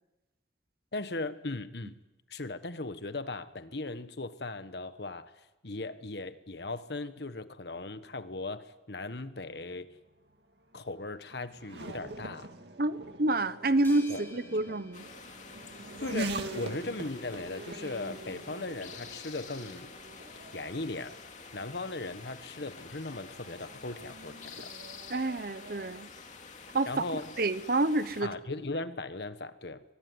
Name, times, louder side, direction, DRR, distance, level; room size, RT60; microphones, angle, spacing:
voice 1, 0.9-1.9 2.3-5.3 5.6-9.9 10.7-12.5 14.1-14.2 14.7-14.8 16.0-19.9 20.5-21.1 21.5-24.7 26.8-27.4 28.2-29.8, left 2 dB, 65° left, 11 dB, 1.3 m, -38 dB
Race car auto racing / Accelerating revving vroom, 9.7-26.0, right 2 dB, 70° right, 2.2 m, -44 dB
voice 2, 12.8-15.1 25.1-26.1 26.7-28.3, right 2 dB, 55° right, 14 dB, 1.0 m, -28 dB
sound 1, 13.8-16.3, left 2 dB, 15° left, 7.1 m, -53 dB
sound 2, 14.9-28.2, left 5 dB, 45° left, 2.5 m, -48 dB
23.5 x 20.5 x 9.7 m, 1.0 s
head